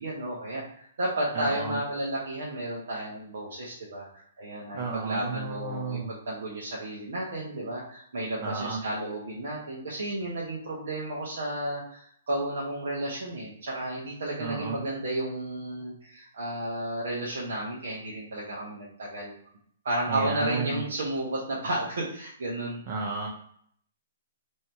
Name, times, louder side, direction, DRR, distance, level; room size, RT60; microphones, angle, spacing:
voice 1, 0.0-19.4 19.8-22.8, right 1 dB, 75° right, -5 dB, 0.9 m, -32 dB
voice 2, 1.3-1.8 4.7-6.1 8.4-8.8 14.4-14.8 20.1-20.8 22.9-23.3, right 4 dB, 35° right, -1 dB, 0.6 m, -32 dB
3.1 x 2.7 x 4.4 m, 0.65 s
hypercardioid pair, 165°, 0 cm